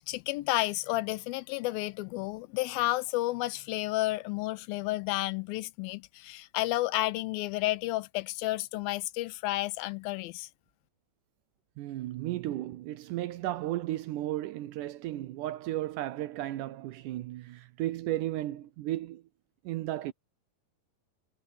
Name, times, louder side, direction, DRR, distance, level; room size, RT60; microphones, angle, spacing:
voice 1, 0.1-10.5, left 18 dB, 85° left, 2.5 m, -31 dB
voice 2, 11.8-19.2 19.7-20.1, right 14 dB, 75° right, 2.0 m, -34 dB
omnidirectional pair, 4.1 m